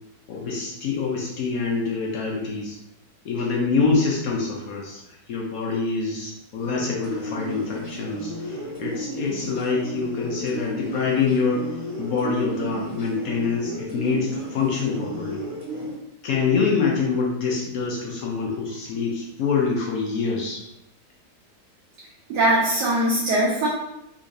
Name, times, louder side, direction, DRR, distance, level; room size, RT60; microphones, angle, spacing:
voice 1, 0.3-2.7 3.2-5.0 5.3-11.6 12.0-15.4 16.2-20.6, left 4 dB, 65° left, -2 dB, 1.0 m, -25 dB
sound 1, 6.6-15.9, right 1 dB, 20° right, 1.2 m, -34 dB
voice 2, 22.3-23.7, right 1 dB, 75° right, -7 dB, 1.4 m, -21 dB
3.8 x 3.0 x 2.6 m, 0.85 s
omnidirectional pair, 1.9 m